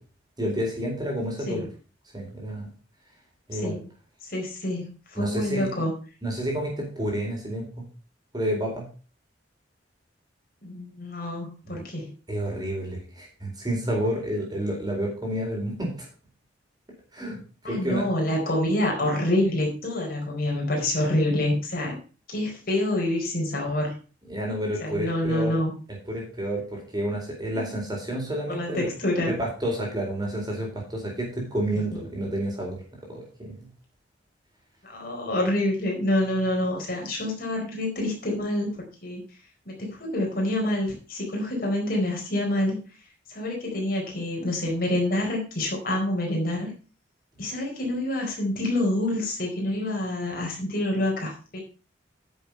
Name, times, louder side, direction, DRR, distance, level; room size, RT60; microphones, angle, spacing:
voice 1, 0.4-1.7 2.1-2.7 3.5-3.8 5.1-5.7 6.2-7.8 8.3-8.8 11.7-11.8 12.3-15.9 17.1-17.4 17.6-18.0 24.2-25.5 26.1-28.9 29.3-32.8 33.1-33.5, right 1 dB, 25° right, 0 dB, 4.1 m, -29 dB
voice 2, 3.5-3.9 4.2-5.9 10.6-12.1 17.6-22.0 22.3-24.0 24.8-25.7 27.5-27.7 28.5-29.3 31.9-32.0 34.8-38.7 39.0-39.2 39.7-42.8 43.3-46.7 47.4-51.6, left 1 dB, 50° left, 0 dB, 4.4 m, -27 dB
9.9 x 7.2 x 5.5 m, 0.36 s
head